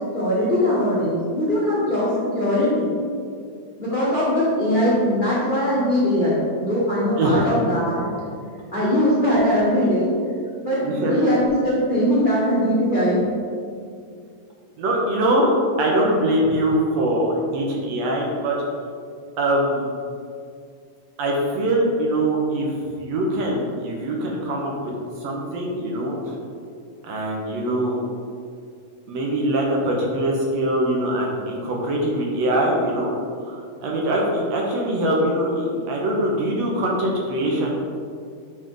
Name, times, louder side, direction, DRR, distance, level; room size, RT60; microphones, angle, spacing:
voice 1, 0.0-2.9 3.8-8.1 8.7-10.1 10.6-13.2, equal, 60° left, -8 dB, 0.5 m, -21 dB
voice 2, 10.8-11.3 14.8-15.5 15.8-18.6 19.4-19.9 21.2-24.9 25.2-26.4 27.0-28.0 29.1-33.1 33.4-33.5 33.8-37.7, right 1 dB, 65° right, -2 dB, 2.0 m, -23 dB
10.5 x 4.1 x 3.8 m, 2.3 s
omnidirectional pair, 3.6 m